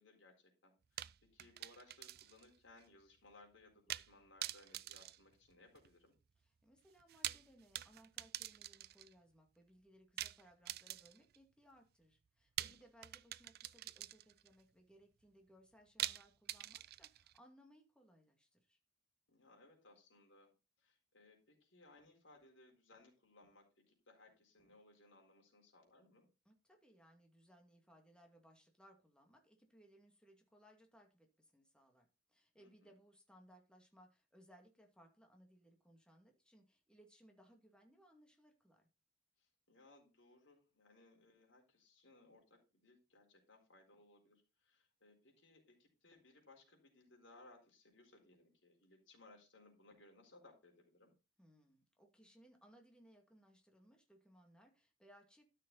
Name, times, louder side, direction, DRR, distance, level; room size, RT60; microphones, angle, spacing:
voice 1, 0.0-6.1 12.6-12.8 19.3-20.5 20.8-26.3 32.6-33.0 39.4-51.1, left 2 dB, 85° left, 2 dB, 4.3 m, -65 dB
sound 1, 1.0-2.5 2.8-2.9 3.9-4.1 4.4-5.9 7.0-9.1 10.2-11.4 12.6-14.5 16.0-17.4, right 13 dB, 55° right, 0.4 m, -45 dB
voice 2, 6.6-18.8 26.5-38.9 51.4-55.5, equal, 5° left, 3 dB, 2.3 m, -66 dB
12.5 x 6.6 x 4.0 m, 0.29 s
head